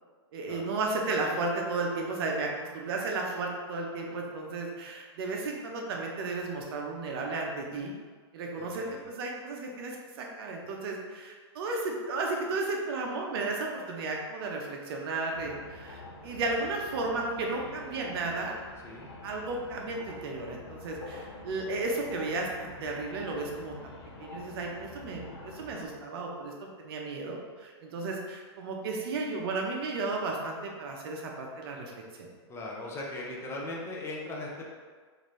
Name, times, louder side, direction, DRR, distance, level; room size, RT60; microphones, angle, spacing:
voice 1, 0.3-7.9 8.3-18.6 19.2-31.9 32.2-32.3, right 3 dB, 60° right, 0 dB, 0.7 m, -34 dB
voice 2, 8.6-9.0 18.8-19.1 32.5-34.7, left 2 dB, 20° left, -2 dB, 0.6 m, -39 dB
sound 1, 15.3-25.9, left 3 dB, 70° left, 0.6 m, -47 dB
3.9 x 2.6 x 3.1 m, 1.5 s
hypercardioid pair, 135°, 14 cm